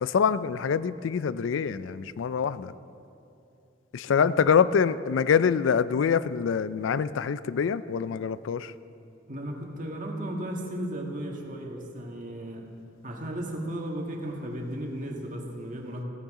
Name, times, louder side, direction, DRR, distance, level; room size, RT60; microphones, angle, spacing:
voice 1, 0.0-2.7 3.9-8.7, left 6 dB, 75° left, 16 dB, 0.4 m, -25 dB
voice 2, 9.3-12.7 13.0-16.0, right 1 dB, 40° right, 0 dB, 1.7 m, -35 dB
16.0 x 14.5 x 3.7 m, 2.6 s
head